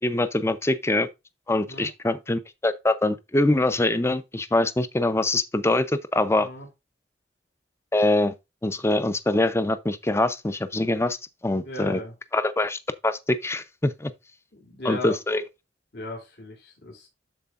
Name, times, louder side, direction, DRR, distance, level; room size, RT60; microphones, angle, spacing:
voice 1, 0.0-1.1 1.5-6.5 7.9-8.3 8.6-11.2 11.4-12.0 12.3-14.1 14.8-15.4, left 2 dB, 15° left, 0.6 m, -24 dB
voice 2, 11.5-12.1 14.6-15.2 15.9-17.1, left 1 dB, 65° left, 3.0 m, -36 dB
12.5 x 4.5 x 2.5 m
head